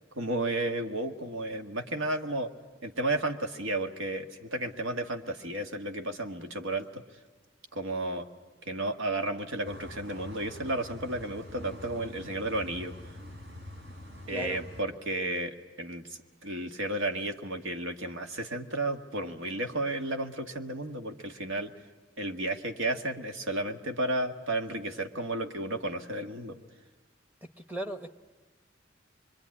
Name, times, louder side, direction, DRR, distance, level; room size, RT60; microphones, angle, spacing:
voice 1, 0.1-2.5 2.8-7.0 7.7-8.3 8.6-13.0 14.3-21.7 22.2-26.6, right 2 dB, 80° right, 6 dB, 1.6 m, -33 dB
sound 1, 9.6-14.8, left 1 dB, 65° right, 3.9 m, -45 dB
voice 2, 14.3-14.6 27.4-28.1, equal, 10° right, 6 dB, 1.0 m, -37 dB
25.5 x 23.0 x 9.7 m, 1.3 s
head